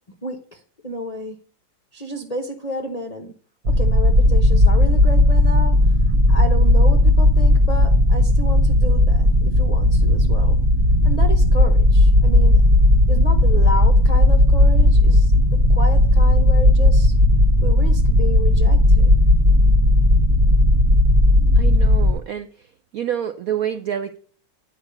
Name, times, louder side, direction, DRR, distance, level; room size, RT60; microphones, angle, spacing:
voice 1, 0.2-1.4 1.9-3.3 3.6-5.9 6.3-10.6 11.0-12.6 13.1-17.1 17.6-19.1, left 1 dB, 45° left, 4 dB, 0.5 m, -31 dB
sound 1, 3.6-22.1, left 1 dB, 45° right, 1.2 m, -15 dB
voice 2, 21.6-22.7 22.9-24.2, right 9 dB, 75° right, 8 dB, 0.8 m, -27 dB
10.0 x 5.0 x 6.7 m, 0.43 s
omnidirectional pair, 2.1 m